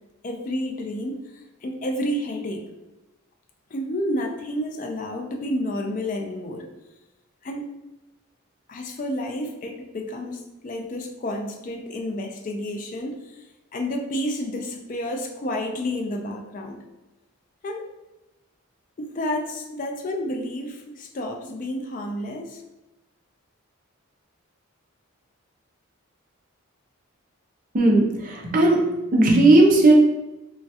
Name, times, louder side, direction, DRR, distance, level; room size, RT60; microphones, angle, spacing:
voice 1, 0.2-2.7 3.7-6.7 7.4-7.8 8.7-16.8 17.6-17.9 19.0-22.6, left 1 dB, 35° left, 3 dB, 0.3 m, -30 dB
voice 2, 27.7-29.9, right 2 dB, 40° right, 0 dB, 0.5 m, -17 dB
3.1 x 2.3 x 2.7 m, 1.0 s
head